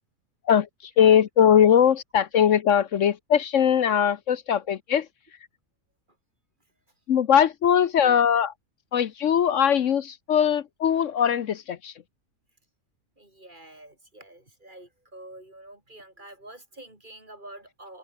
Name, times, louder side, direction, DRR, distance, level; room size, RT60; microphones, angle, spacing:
voice 1, 1.0-5.1 7.1-8.5 8.9-11.9, left 8 dB, 70° left, 1.2 m, -20 dB
voice 2, 13.2-18.0, right 1 dB, 35° right, 5.4 m, -47 dB
omnidirectional pair, 1.4 m